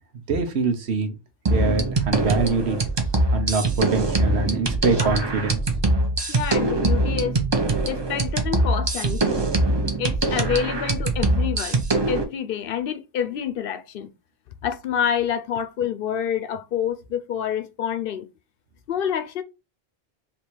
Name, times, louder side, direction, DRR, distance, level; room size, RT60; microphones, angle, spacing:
voice 1, 0.3-1.1 1.5-2.8 3.3-5.6, right 4 dB, 85° right, 1.2 m, -24 dB
sound 1, 1.5-12.2, right 2 dB, 30° right, 0.6 m, -23 dB
voice 2, 6.3-7.4 7.9-9.4 10.0-14.1 14.6-18.3 18.9-19.4, left 8 dB, 65° left, 0.7 m, -27 dB
3.5 x 2.8 x 4.4 m
omnidirectional pair, 1.1 m